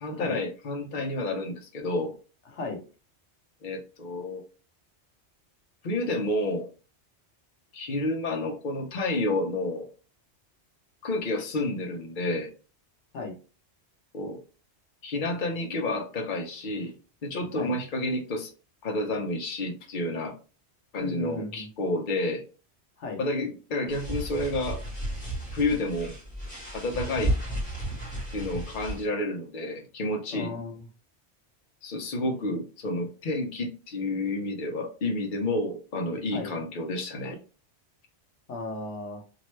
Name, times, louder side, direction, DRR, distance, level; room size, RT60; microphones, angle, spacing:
voice 1, 0.0-2.1 3.6-4.4 5.8-6.7 7.7-9.9 11.0-12.5 14.1-14.4 15.0-16.9 17.2-18.5 18.8-20.3 20.9-22.4 23.2-24.8 25.5-26.1 26.7-27.3 28.3-30.5 31.8-37.4, left 2 dB, 50° left, 2 dB, 0.8 m, -30 dB
voice 2, 21.0-21.7 23.0-23.2 30.3-30.9 36.3-36.5 38.5-39.2, left 3 dB, 85° left, 3 dB, 1.2 m, -35 dB
sound 1, 23.9-29.1, right 1 dB, 5° left, 1.8 m, -33 dB
3.2 x 2.6 x 3.1 m, 0.34 s
omnidirectional pair, 1.2 m